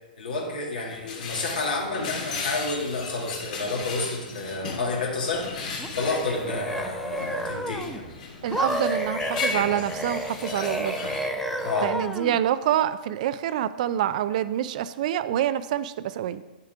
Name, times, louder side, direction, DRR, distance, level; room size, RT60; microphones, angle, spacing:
voice 1, 0.2-5.5 5.9-8.1 11.6-11.9, left 3 dB, 75° left, -1 dB, 2.1 m, -30 dB
sound 1, 0.8-11.7, left 4 dB, 55° left, 1.8 m, -36 dB
sound 2, 5.3-10.3, left 4 dB, 40° left, 2.4 m, -44 dB
sound 3, 5.8-8.0 8.5-12.4, equal, 5° left, 0.6 m, -31 dB
voice 2, 8.4-11.0 11.8-16.4, right 11 dB, 55° right, 14 dB, 0.4 m, -26 dB
9.5 x 6.7 x 3.5 m, 1.1 s
hypercardioid pair, 115°, 5 cm